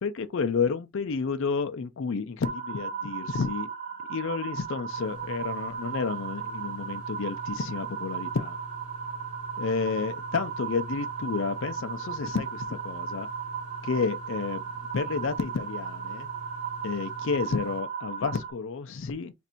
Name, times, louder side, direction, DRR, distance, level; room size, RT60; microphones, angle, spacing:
voice 1, 0.0-3.7 4.1-8.6 9.6-13.3 13.8-14.6 14.9-16.3 16.8-19.3, left 5 dB, 55° left, 0.4 m, -30 dB
sound 1, 2.4-18.5, right 7 dB, 35° right, 0.6 m, -36 dB
sound 2, 4.9-17.8, left 1 dB, 85° left, 0.9 m, -46 dB
3.2 x 2.5 x 4.3 m
head